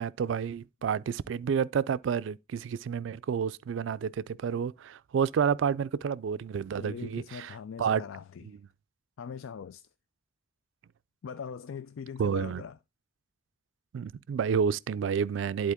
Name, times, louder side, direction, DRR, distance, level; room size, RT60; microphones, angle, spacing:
voice 1, 0.0-8.0 8.4-8.6 12.2-12.6 13.9-15.7, right 7 dB, 65° right, 0.3 m, -30 dB
voice 2, 6.8-8.6 9.2-9.9 11.2-12.8, left 6 dB, 80° left, 0.4 m, -41 dB
11.0 x 4.2 x 3.6 m
head